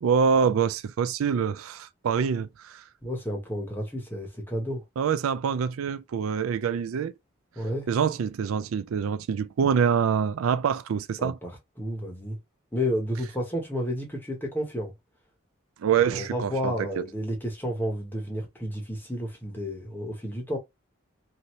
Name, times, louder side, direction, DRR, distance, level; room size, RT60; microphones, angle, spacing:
voice 1, 0.0-2.8 5.0-7.1 7.9-11.4 15.8-17.0, right 7 dB, 80° right, 0.4 m, -25 dB
voice 2, 3.0-4.8 7.6-7.9 11.2-11.5 11.8-12.4 12.7-14.9 16.0-20.6, equal, 10° left, 1.1 m, -31 dB
2.8 x 2.7 x 3.1 m
head